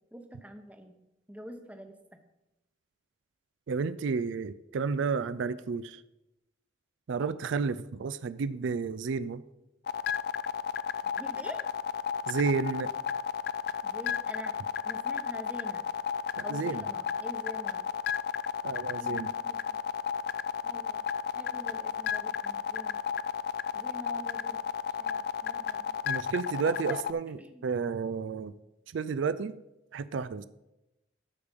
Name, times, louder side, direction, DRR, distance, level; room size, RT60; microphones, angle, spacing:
voice 1, 0.1-0.9 1.3-2.2 7.1-7.3 11.2-11.6 13.8-14.6 14.8-15.9 16.4-17.9 19.0-19.8 20.6-21.0 21.3-23.0 23.7-24.6 25.0-26.2 26.5-27.0 27.4-27.6, right 1 dB, 5° right, 6 dB, 0.8 m, -46 dB
voice 2, 3.7-6.0 7.1-9.4 12.3-12.9 16.4-16.8 18.6-19.3 26.1-27.4 27.6-28.5 28.9-29.6 29.9-30.4, right 5 dB, 75° right, 15 dB, 0.4 m, -31 dB
sound 1, 9.9-27.1, left 7 dB, 55° left, 0.3 m, -32 dB
12.5 x 5.1 x 5.2 m, 0.93 s
head